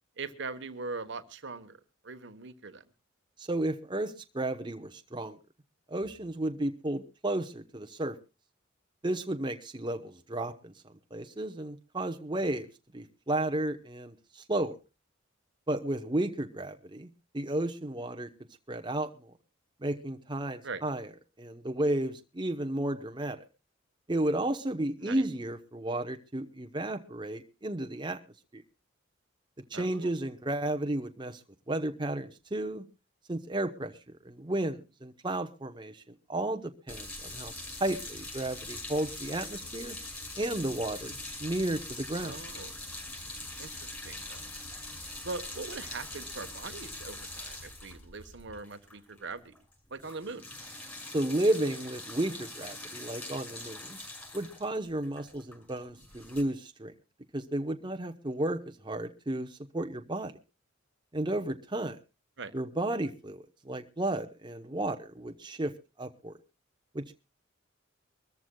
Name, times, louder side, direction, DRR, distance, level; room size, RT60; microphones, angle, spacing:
voice 1, 0.2-2.8 20.6-20.8 25.0-25.2 29.7-30.1 42.2-42.8 43.6-44.5 45.2-49.6 49.9-50.4 62.4-62.5, right 3 dB, 65° right, 10 dB, 1.2 m, -41 dB
voice 2, 3.4-5.4 5.9-8.2 9.0-10.7 11.1-12.7 12.9-14.8 15.7-17.1 17.3-18.3 18.7-19.3 19.8-21.1 21.4-23.4 24.1-28.2 28.5-28.6 29.7-31.4 31.7-32.8 33.3-34.0 34.2-36.0 36.3-37.5 37.8-40.0 40.4-42.4 51.1-54.0 54.3-56.9 57.3-60.3 61.1-62.0 62.5-65.7 66.0-66.3 66.9-67.1, right 1 dB, 25° right, 6 dB, 0.9 m, -33 dB
sound 1, 36.9-48.5, equal, 90° left, 5.7 m, -53 dB
sound 2, 36.9-49.3 49.5-49.7 50.0-56.4, left 2 dB, 10° left, 5.6 m, -43 dB
24.5 x 14.0 x 2.3 m, 0.30 s
head